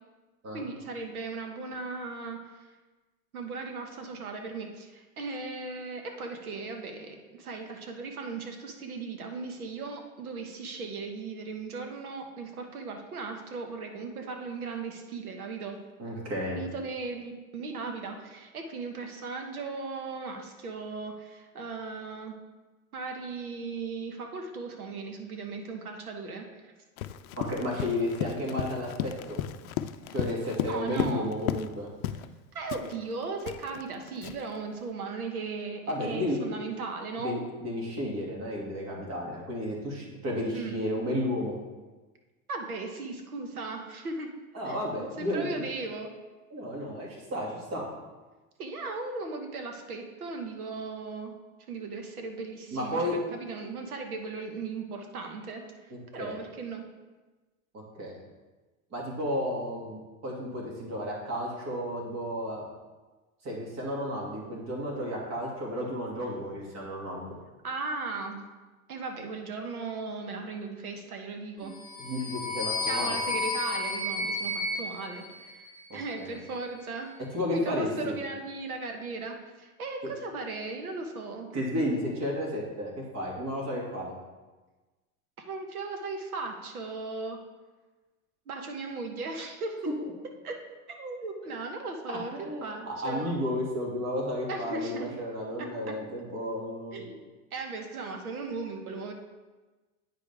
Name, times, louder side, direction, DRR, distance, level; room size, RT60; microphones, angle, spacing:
voice 1, 0.5-2.7 3.3-15.8 16.5-22.4 22.9-26.7 27.8-27.9 30.7-31.3 32.5-37.4 40.5-40.8 42.5-44.3 44.6-46.1 48.6-51.3 51.7-56.9 67.6-68.4 68.9-71.8 72.8-75.7 75.9-77.1 77.5-81.5 85.4-87.4 88.5-89.8 90.4-90.6 90.9-93.3 94.5-95.2 95.6-95.9 96.9-97.2 97.5-99.1, right 3 dB, 85° right, 4 dB, 1.2 m, -37 dB
voice 2, 16.0-16.6 27.4-29.4 30.1-31.9 35.9-36.4 37.2-41.6 44.5-45.6 46.5-47.9 52.7-53.2 55.9-56.4 57.7-58.2 58.9-62.7 63.4-67.3 71.6-73.2 75.9-76.4 77.3-78.2 81.5-84.2 92.1-97.1, left 1 dB, 40° right, -2 dB, 2.4 m, -33 dB
Run, 27.0-31.7 32.0-32.3 32.7-34.6, left 11 dB, 75° left, 0.5 m, -35 dB
sound 1, 71.8-76.1, left 2 dB, 10° left, 1.6 m, -32 dB
9.0 x 4.9 x 3.5 m, 1.2 s
hypercardioid pair, 90°, 43 cm